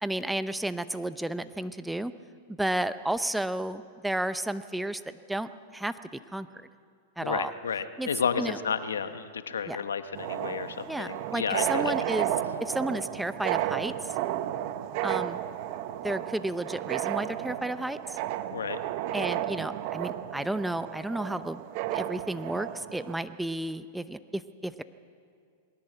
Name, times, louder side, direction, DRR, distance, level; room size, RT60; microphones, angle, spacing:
voice 1, 0.0-2.1 2.5-6.5 7.2-7.5 8.0-8.1 8.4-8.6 9.7-9.8 10.9-12.3 12.6-13.9 15.0-15.4 16.0-18.2 19.1-21.6 21.9-24.8, right 1 dB, 5° right, 12 dB, 0.7 m, -32 dB
voice 2, 7.2-11.9 18.5-18.8, left 6 dB, 85° left, 10 dB, 1.1 m, -32 dB
sound 1, 10.1-23.2, right 13 dB, 55° right, 1.0 m, -33 dB
20.5 x 17.0 x 8.0 m, 2.2 s
hypercardioid pair, 110°, 0 cm